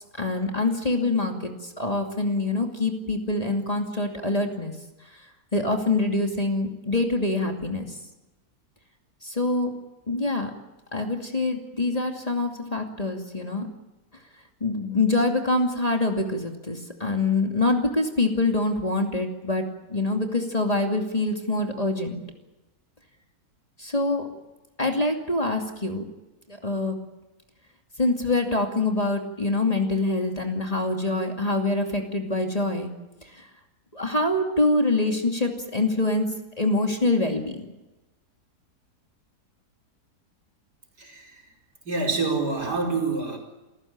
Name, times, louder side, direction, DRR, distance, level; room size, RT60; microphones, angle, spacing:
voice 1, 0.2-4.7 5.5-7.9 9.2-9.7 10.1-10.5 10.9-13.7 14.6-22.2 23.8-24.3 24.8-26.0 26.5-27.0 28.0-32.9 33.9-36.3 36.6-37.7, left 2 dB, 20° left, 2 dB, 2.6 m, -25 dB
voice 2, 41.0-41.3 41.9-43.4, right 3 dB, 80° right, 0 dB, 5.4 m, -26 dB
29.0 x 14.5 x 8.7 m, 1.0 s
omnidirectional pair, 1.7 m